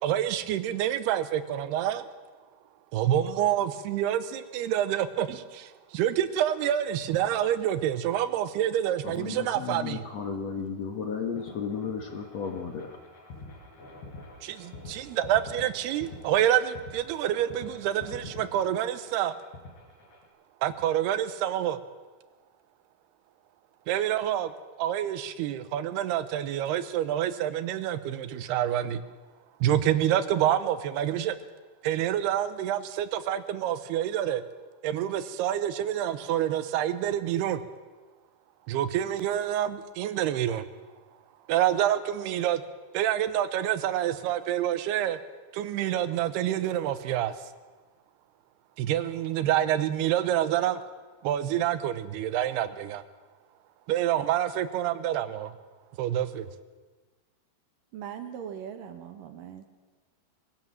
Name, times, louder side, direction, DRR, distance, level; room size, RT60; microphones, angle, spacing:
voice 1, 0.0-2.0 2.9-10.0 14.4-19.4 20.6-21.8 23.9-24.5 24.8-29.0 29.6-31.4 31.8-34.4 34.8-37.6 38.7-40.7 41.5-42.6 42.9-45.2 45.5-47.4 48.8-50.8 51.2-53.0 53.9-55.5 56.0-56.5, right 11 dB, 85° right, 12 dB, 2.9 m, -27 dB
voice 2, 9.0-13.0, left 6 dB, 55° left, 4 dB, 2.1 m, -34 dB
sound 1, 11.4-20.3, left 2 dB, 85° left, 6.6 m, -46 dB
voice 3, 57.9-59.7, right 8 dB, 65° right, 7 dB, 2.7 m, -40 dB
22.0 x 16.5 x 7.6 m, 1.3 s
omnidirectional pair, 4.6 m